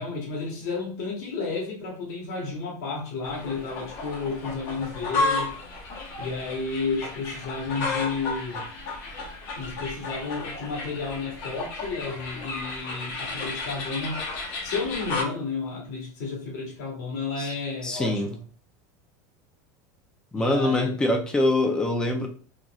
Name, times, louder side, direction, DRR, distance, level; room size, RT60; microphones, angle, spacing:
voice 1, 0.0-5.6 6.2-8.6 9.5-14.3 14.6-18.4 20.3-21.0, left 4 dB, 65° left, -1 dB, 1.3 m, -32 dB
sound 1, 3.2-15.2, left 3 dB, 40° left, 0.9 m, -33 dB
voice 2, 17.8-18.3 20.3-22.3, left 1 dB, 10° left, 4 dB, 0.4 m, -24 dB
3.9 x 3.0 x 2.3 m, 0.43 s
supercardioid pair, 175°, 9 cm